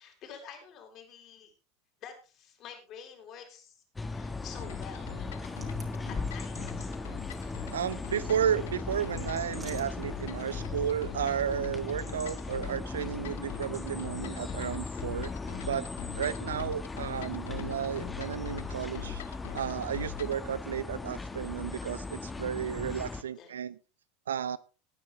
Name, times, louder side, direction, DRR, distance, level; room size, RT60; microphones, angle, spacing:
voice 1, 0.0-1.5 2.0-5.3 6.1-7.0 16.3-16.7 23.1-23.5, left 7 dB, 45° left, 3 dB, 5.1 m, -49 dB
sound 1, 4.0-23.2, left 3 dB, 15° left, 1.5 m, -38 dB
sound 2, 4.6-20.4, left 15 dB, 70° left, 0.8 m, -44 dB
sound 3, 5.0-10.7, right 3 dB, 20° right, 3.5 m, -55 dB
voice 2, 7.7-15.3 15.7-15.9 16.1-19.2 19.5-23.8 24.3-24.6, right 8 dB, 80° right, 18 dB, 0.6 m, -33 dB
19.0 x 9.6 x 3.2 m, 0.32 s
hypercardioid pair, 85°, 0 cm